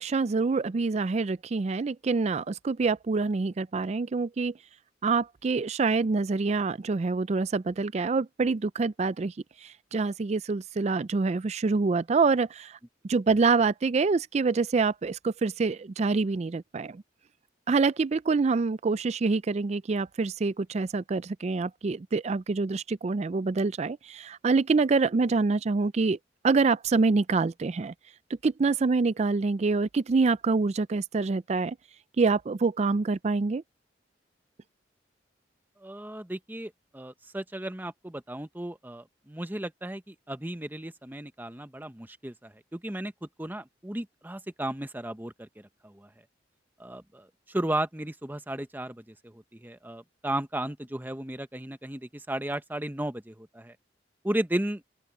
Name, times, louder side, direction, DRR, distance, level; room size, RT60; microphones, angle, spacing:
voice 1, 0.0-4.5 5.0-9.3 9.9-12.7 13.1-17.0 17.7-26.2 26.4-27.9 28.4-31.8 32.2-33.6, right 4 dB, 35° right, 0.4 m, -26 dB
voice 2, 35.8-45.5 45.8-46.1 46.8-53.8 54.2-54.8, right 1 dB, 10° right, 0.9 m, -35 dB
open air
head